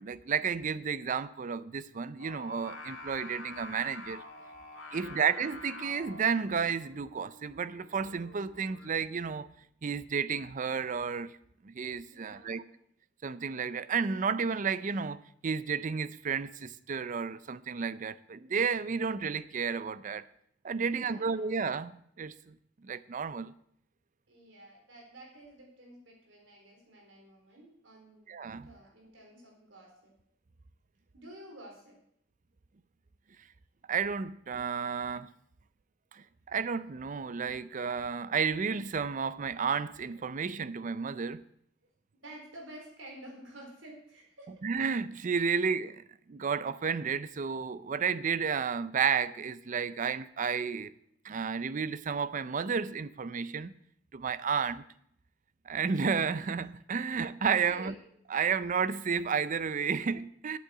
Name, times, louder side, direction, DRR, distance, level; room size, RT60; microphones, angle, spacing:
voice 1, 0.0-4.2 4.9-9.5 9.8-11.4 11.6-12.6 13.2-20.3 20.6-22.5 22.8-23.5 28.3-28.7 33.9-35.3 36.1-41.5 44.6-46.0 46.3-50.9 51.2-53.7 54.1-54.8 55.7-57.9 58.3-60.6, right 6 dB, 40° right, 0.5 m, -32 dB
Singing, 2.2-8.9, left 2 dB, 85° left, 2.2 m, -47 dB
voice 2, 4.9-5.2 12.1-12.8 20.8-21.5 24.3-28.3 28.7-30.1 31.1-32.0 42.2-44.5 57.7-57.9, right 1 dB, 85° right, 4.2 m, -51 dB
8.4 x 8.4 x 7.8 m
head